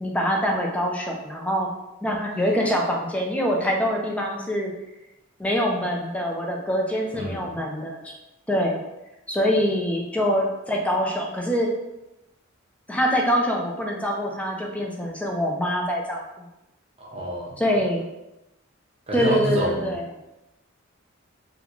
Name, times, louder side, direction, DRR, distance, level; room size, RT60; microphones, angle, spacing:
voice 1, 0.0-1.7 2.0-4.7 5.4-8.1 8.5-8.8 9.3-11.7 12.9-16.4 17.6-18.1 19.1-20.1, equal, 5° left, 0 dB, 0.4 m, -24 dB
voice 2, 7.1-7.6 17.0-17.8 19.1-19.9, equal, 30° right, -3 dB, 0.8 m, -29 dB
3.5 x 2.4 x 2.9 m, 0.94 s
head